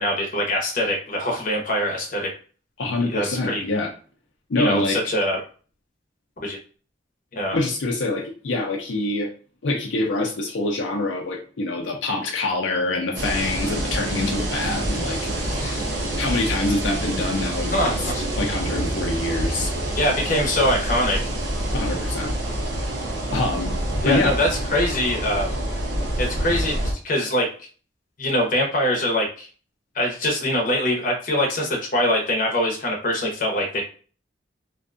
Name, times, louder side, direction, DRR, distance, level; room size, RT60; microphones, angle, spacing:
voice 1, 0.0-2.3 3.0-3.6 4.6-5.4 6.4-6.6 7.3-7.6 17.7-18.1 19.9-21.2 24.0-25.5 26.2-27.5 28.2-29.5 29.9-33.8, left 1 dB, 45° left, -1 dB, 0.8 m, -23 dB
voice 2, 2.8-3.9 4.5-5.0 7.5-9.3 9.6-15.9 16.2-19.7 21.7-22.4 23.3-23.7 24.0-24.3, left 2 dB, 85° left, 1 dB, 0.5 m, -25 dB
sound 1, 13.1-26.9, right 1 dB, 80° right, 0.8 m, -27 dB
2.6 x 2.3 x 2.4 m, 0.39 s
head